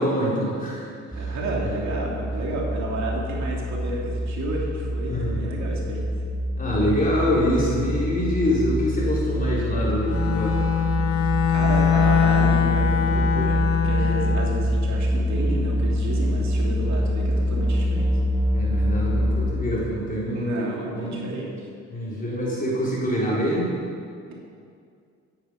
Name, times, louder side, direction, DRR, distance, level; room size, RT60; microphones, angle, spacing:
voice 1, 0.0-1.4 5.0-5.4 6.6-10.6 18.5-21.2 21.9-23.7, equal, 30° left, -6 dB, 4.2 m, -25 dB
sound 1, 1.1-19.5, equal, 5° right, 1.3 m, -25 dB
voice 2, 1.1-6.1 11.2-18.1 20.3-21.5 24.3-24.4, right 2 dB, 65° right, -2 dB, 2.9 m, -31 dB
Bowed string instrument, 10.0-14.5, left 8 dB, 50° left, 1.5 m, -22 dB
15.0 x 10.5 x 5.2 m, 2.3 s
cardioid pair, 90°, 30 cm